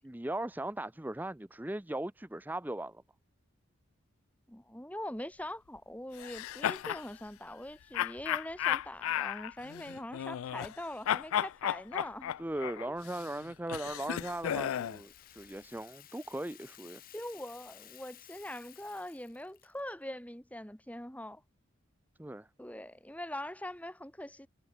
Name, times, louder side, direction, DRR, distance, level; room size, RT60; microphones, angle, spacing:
voice 1, 0.0-3.0 12.4-17.0 22.2-22.5, right 1 dB, 10° right, 0.5 m, -38 dB
voice 2, 4.5-12.4 12.7-12.9 17.1-21.4 22.6-24.5, left 1 dB, 5° left, 1.8 m, -43 dB
sound 1, 6.2-7.1 7.9-10.8 11.1-15.0, left 10 dB, 80° left, 0.3 m, -34 dB
Rattle (instrument), 13.9-19.9, left 12 dB, 40° left, 1.8 m, -56 dB
head